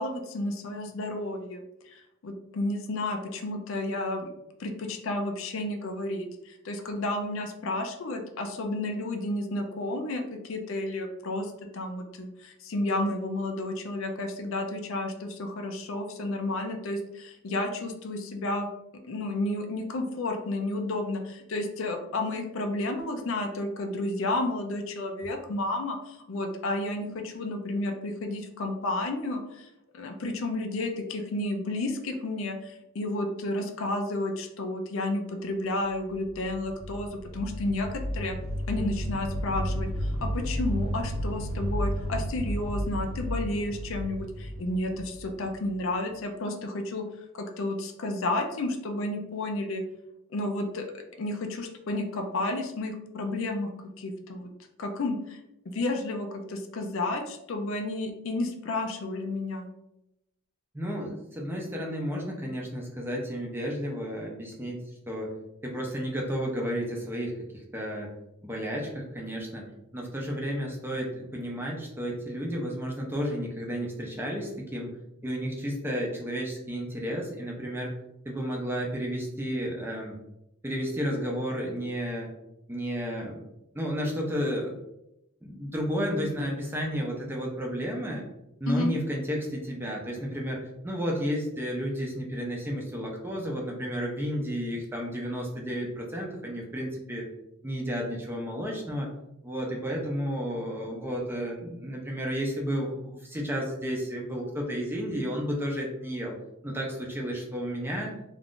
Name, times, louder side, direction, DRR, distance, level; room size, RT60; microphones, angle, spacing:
voice 1, 0.0-4.3 4.6-18.7 19.0-29.7 29.9-38.4 38.7-47.0 47.3-49.8 50.3-53.7 54.0-54.5 54.8-55.4 55.7-59.7 88.7-88.9, left 2 dB, 60° left, 5 dB, 0.4 m, -31 dB
sound 1, 36.1-45.9, equal, 90° right, 0.5 m, -33 dB
voice 2, 60.7-64.8 65.1-65.3 65.6-68.1 68.4-74.9 75.2-77.9 78.2-80.2 80.6-82.3 82.7-83.5 83.7-84.7 85.4-88.2 88.6-97.2 97.6-99.1 99.4-106.3 106.6-108.1, equal, 10° right, -1 dB, 0.5 m, -32 dB
2.5 x 2.4 x 3.5 m, 0.87 s
head